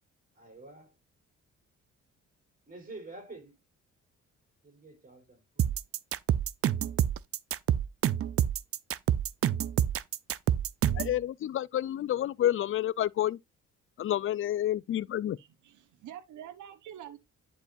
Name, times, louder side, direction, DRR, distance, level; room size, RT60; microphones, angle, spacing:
voice 1, 0.4-0.9 2.7-3.6 4.6-5.7, right 2 dB, 30° right, 3.8 m, -48 dB
sound 1, 5.6-11.2, right 10 dB, 50° right, 0.5 m, -27 dB
voice 2, 10.9-13.4 14.0-15.4, left 12 dB, 45° left, 0.4 m, -29 dB
voice 3, 15.4-17.2, right 10 dB, 80° right, 1.1 m, -46 dB
10.5 x 4.8 x 2.5 m
cardioid pair, 90°, 30 cm